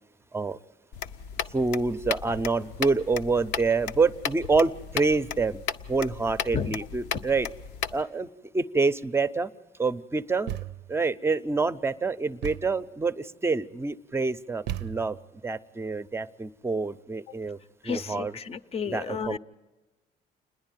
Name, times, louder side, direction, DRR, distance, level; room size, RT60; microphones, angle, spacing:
sound 1, 0.9-8.0, left 8 dB, 85° left, 0.7 m, -35 dB
voice 1, 1.5-5.6 5.9-7.5 7.9-9.5 9.8-10.6 10.9-15.2 15.4-17.6 17.8-18.3 18.9-19.4, right 4 dB, 15° right, 13 dB, 0.6 m, -27 dB
Thump thud, 10.5-11.0 12.4-12.9 14.7-15.3, right 12 dB, 80° right, 0.5 m, -36 dB
voice 2, 17.8-19.4, left 6 dB, 35° left, 14 dB, 0.6 m, -32 dB
28.5 x 10.5 x 9.1 m, 1.2 s
cardioid pair, 110°, 17 cm